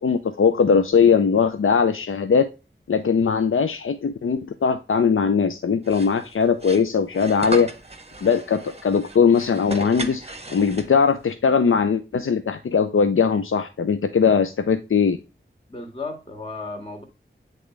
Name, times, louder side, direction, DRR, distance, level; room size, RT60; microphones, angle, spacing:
voice 1, 0.0-2.5 2.9-7.7 8.2-15.2, left 6 dB, 90° left, 9 dB, 0.5 m, -20 dB
sound 1, 5.8-11.2, right 1 dB, 30° right, 0.9 m, -36 dB
voice 2, 15.7-17.0, left 3 dB, 25° left, 1 dB, 1.8 m, -34 dB
8.0 x 3.7 x 3.1 m, 0.29 s
wide cardioid pair, 50°, 21 cm